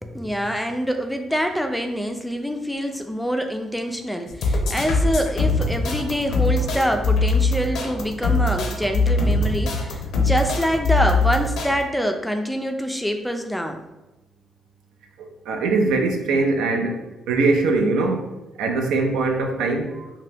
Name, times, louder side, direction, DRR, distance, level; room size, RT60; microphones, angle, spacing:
voice 1, 0.0-13.8, equal, 5° left, 5 dB, 0.3 m, -25 dB
sound 1, 4.3-11.7, left 3 dB, 75° left, 0.5 m, -22 dB
voice 2, 15.2-17.0 17.3-18.3 18.6-20.1, right 3 dB, 90° right, 3 dB, 0.4 m, -22 dB
2.8 x 2.2 x 3.3 m, 1.0 s
cardioid pair, 90°, 0 cm